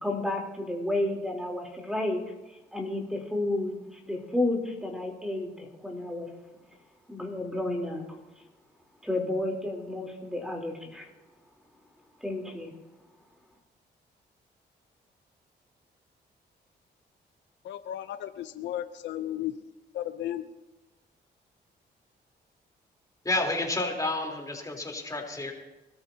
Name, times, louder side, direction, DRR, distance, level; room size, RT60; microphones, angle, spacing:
voice 1, 0.0-2.3 2.7-6.3 7.1-8.0 9.0-11.1 12.2-12.7, left 1 dB, 5° right, 1 dB, 3.5 m, -31 dB
voice 2, 17.6-19.5 19.9-20.4, left 12 dB, 85° left, 11 dB, 0.6 m, -34 dB
voice 3, 23.2-25.5, left 2 dB, 20° left, 0 dB, 3.6 m, -30 dB
24.5 x 13.5 x 2.8 m, 1.0 s
cardioid pair, 70°, 18 cm